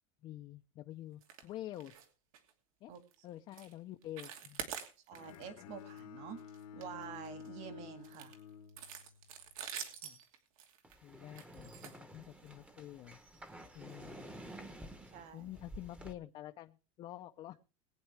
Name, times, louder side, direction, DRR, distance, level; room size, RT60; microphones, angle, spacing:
voice 1, 0.2-2.0 2.8-2.9 3.2-4.7 10.0-10.2 11.0-13.2 13.7-14.6 15.3-17.6, left 13 dB, 30° left, 6 dB, 0.6 m, -48 dB
sound 1, 1.2-1.5 1.7-2.1 2.3-2.5 3.0-3.1 3.5-3.7 4.0-5.4 5.8-6.0 6.4-7.5 8.0-12.6 13.4-13.5 13.9-14.0 14.4-14.5, right 8 dB, 85° right, 2.7 m, -47 dB
Bowed string instrument, 5.1-9.3, left 8 dB, 80° left, 1.6 m, -51 dB
voice 2, 5.1-6.4 6.7-8.3 15.1-15.5, right 7 dB, 40° right, 9 dB, 1.9 m, -48 dB
sound 2, 10.8-16.1, right 1 dB, 5° right, 1.0 m, -51 dB
20.5 x 9.2 x 3.4 m, 0.32 s
supercardioid pair, 160°, 17 cm